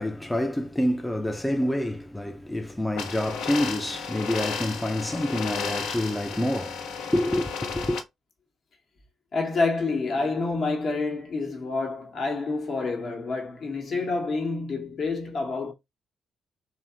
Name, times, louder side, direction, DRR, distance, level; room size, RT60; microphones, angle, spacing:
voice 1, 0.0-8.0, left 1 dB, 10° left, 0.4 m, -27 dB
sound 1, 3.0-8.0, left 6 dB, 70° left, 0.4 m, -33 dB
voice 2, 9.3-15.7, left 3 dB, 55° left, 0.8 m, -28 dB
2.7 x 2.1 x 2.2 m
hypercardioid pair, 45°, 0 cm